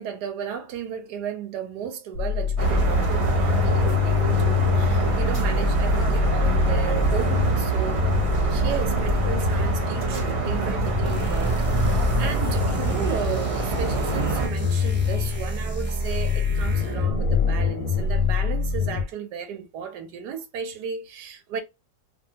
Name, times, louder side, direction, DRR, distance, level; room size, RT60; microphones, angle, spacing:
voice 1, 0.0-8.1 8.5-21.6, right 7 dB, 75° right, 1.1 m, -34 dB
sound 1, 2.1-19.0, left 5 dB, 70° left, 0.9 m, -26 dB
sound 2, 2.6-14.5, right 3 dB, 45° right, 0.9 m, -25 dB
sound 3, 11.0-17.2, right 1 dB, 10° right, 0.6 m, -33 dB
2.7 x 2.5 x 2.7 m
omnidirectional pair, 1.9 m